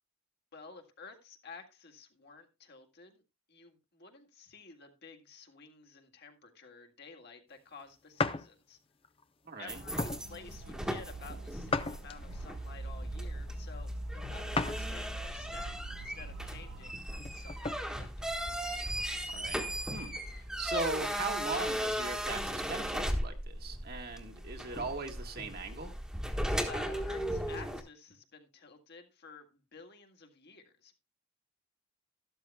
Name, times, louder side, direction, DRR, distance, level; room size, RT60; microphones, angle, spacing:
voice 1, 0.5-3.2 3.5-8.8 9.6-18.4 26.6-31.0, left 4 dB, 50° left, 1.9 m, -52 dB
sound 1, 8.2-8.5 9.0-9.2 10.0-10.2 11.7-12.4 14.5-14.9 15.3-15.4 17.1-17.8, left 3 dB, 25° left, 0.6 m, -34 dB
voice 2, 9.4-9.8 19.3-19.6 19.9-25.9, right 3 dB, 45° right, 1.6 m, -39 dB
sound 2, 9.7-27.8, equal, 5° right, 1.3 m, -37 dB
sound 3, 9.8-16.9, right 4 dB, 85° right, 0.9 m, -48 dB
13.0 x 12.5 x 2.2 m
head